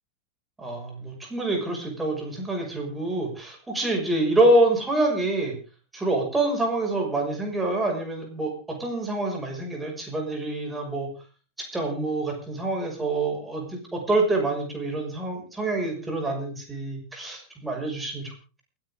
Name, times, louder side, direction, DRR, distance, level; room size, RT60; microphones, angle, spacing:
voice 1, 0.6-5.5 5.9-11.1 11.7-18.3, right 2 dB, 10° right, 1 dB, 6.1 m, -26 dB
29.0 x 10.0 x 3.8 m, 0.36 s
figure-of-eight pair, 90°, 0 cm